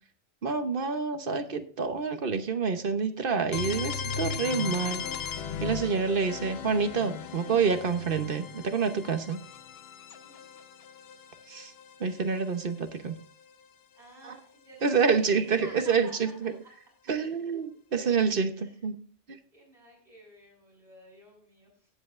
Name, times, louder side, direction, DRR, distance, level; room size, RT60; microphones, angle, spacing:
voice 1, 0.4-9.4 11.5-11.7 12.0-13.1 14.2-14.4 14.8-16.5 17.1-19.0 19.3-19.4, right 5 dB, 50° right, 8 dB, 1.1 m, -28 dB
sound 1, 3.5-13.3, left 7 dB, 65° left, 0.9 m, -38 dB
voice 2, 13.9-15.3 15.6-16.7 18.5-18.8 19.5-21.9, right 1 dB, 75° right, -6 dB, 6.3 m, -52 dB
18.5 x 7.6 x 2.5 m, 0.44 s
omnidirectional pair, 1.2 m